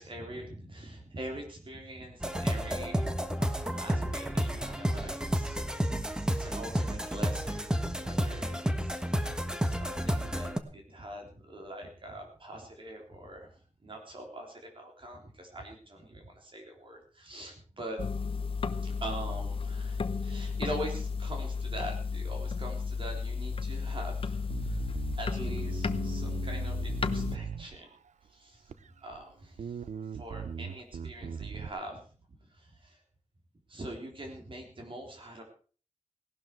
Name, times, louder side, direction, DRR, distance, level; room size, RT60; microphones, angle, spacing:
voice 1, 0.0-7.7 8.0-9.2 9.6-13.5 13.8-18.0 18.6-24.8 25.2-27.9 28.3-28.7 29.0-29.8 30.1-32.0 32.5-33.0 33.7-35.4, right 1 dB, 45° right, 2 dB, 3.6 m, -43 dB
sound 1, 2.2-10.6, equal, 5° right, 1.3 m, -31 dB
sound 2, 18.0-27.4, left 5 dB, 50° left, 0.9 m, -33 dB
Bass guitar, 24.5-28.1 28.7-29.2 29.6-31.7, right 7 dB, 80° right, 0.7 m, -39 dB
17.5 x 12.0 x 4.6 m, 0.40 s
wide cardioid pair, 140°, 12 cm